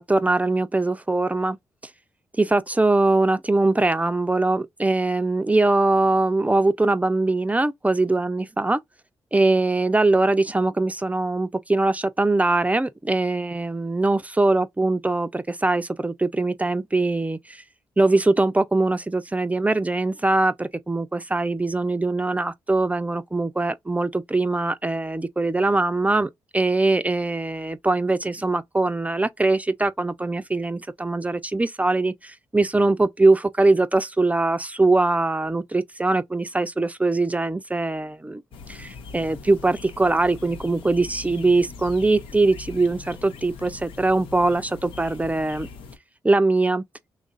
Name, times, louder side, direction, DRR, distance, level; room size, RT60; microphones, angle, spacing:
voice 1, 0.0-1.6 2.4-8.8 9.3-17.6 18.0-38.4 38.7-45.7 46.2-46.8, right 2 dB, 15° right, 0.4 m, -22 dB
sound 1, 38.5-46.0, left 4 dB, 75° left, 0.6 m, -41 dB
3.1 x 2.4 x 3.9 m
hypercardioid pair, 40°, 9 cm